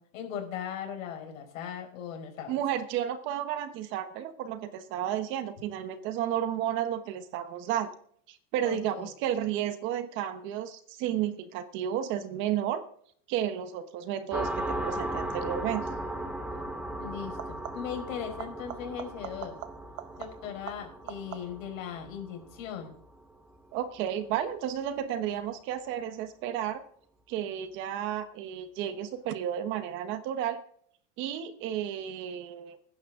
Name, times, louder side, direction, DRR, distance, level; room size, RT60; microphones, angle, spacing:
voice 1, 0.0-2.6 8.6-9.1 17.0-19.6 20.2-22.9 25.2-25.3, left 8 dB, 90° left, 3 dB, 4.8 m, -38 dB
voice 2, 2.5-7.9 8.3-12.9 13.3-15.8 23.7-26.8 27.3-30.6 31.2-32.9, right 10 dB, 30° right, 11 dB, 1.0 m, -32 dB
sound 1, 14.3-23.6, right 1 dB, 5° right, 0.9 m, -37 dB
sound 2, 15.8-16.1 17.2-18.0 18.4-21.8 27.2-27.8 29.3-29.4, right 14 dB, 90° right, 1.1 m, -45 dB
20.0 x 10.5 x 3.7 m, 0.62 s
supercardioid pair, 175°, 39 cm